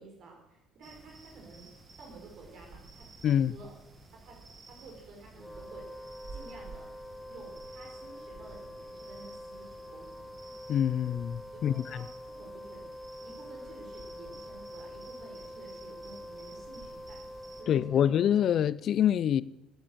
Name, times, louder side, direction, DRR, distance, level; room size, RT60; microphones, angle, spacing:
voice 1, 0.0-1.7 2.0-3.1 3.5-3.7 4.2-4.4 4.7-6.1 6.3-6.9 7.3-10.3 11.5-12.8 13.2-17.2 17.6-18.0, right 3 dB, 55° right, 4.6 m, -51 dB
sound 1, 0.8-17.7, right 3 dB, 25° right, 1.9 m, -52 dB
Wind instrument woodwind instrument, 5.3-18.7, left 1 dB, 10° left, 0.8 m, -46 dB
voice 2, 10.7-12.0 17.7-19.4, left 9 dB, 50° left, 0.5 m, -26 dB
12.0 x 8.9 x 7.9 m
cardioid pair, 110°, 0 cm